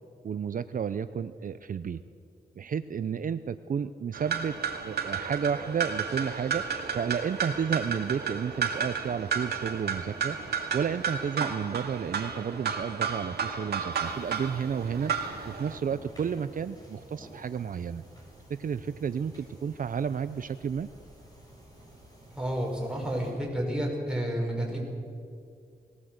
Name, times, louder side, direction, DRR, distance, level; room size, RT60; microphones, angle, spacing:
voice 1, 0.2-2.0 2.6-4.6 4.8-18.0 18.5-20.9, right 7 dB, 55° right, 12 dB, 0.6 m, -32 dB
sound 1, 4.1-15.8, right 6 dB, 85° right, 2.2 m, -32 dB
sound 2, 13.9-23.3, right 1 dB, 25° left, 6.7 m, -51 dB
voice 2, 22.3-24.8, right 1 dB, 5° right, -2 dB, 6.0 m, -30 dB
20.5 x 17.0 x 8.0 m, 2.4 s
wide cardioid pair, 100°, 16 cm